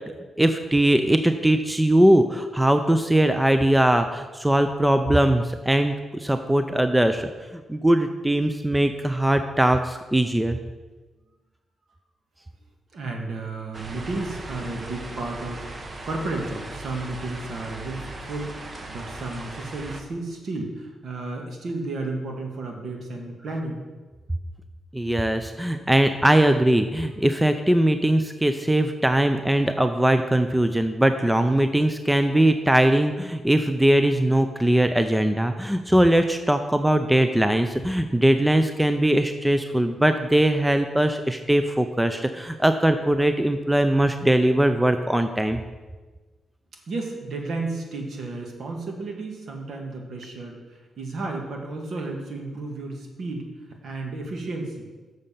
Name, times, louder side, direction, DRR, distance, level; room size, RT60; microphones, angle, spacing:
voice 1, 0.4-10.6 24.9-45.6, right 1 dB, 5° right, 8 dB, 0.4 m, -21 dB
voice 2, 12.9-23.8 46.9-53.5 53.8-54.9, right 2 dB, 60° right, 1 dB, 1.6 m, -33 dB
sound 1, 13.7-20.0, right 2 dB, 35° right, 0.9 m, -38 dB
7.0 x 6.5 x 5.7 m, 1.3 s
cardioid pair, 110°, 0 cm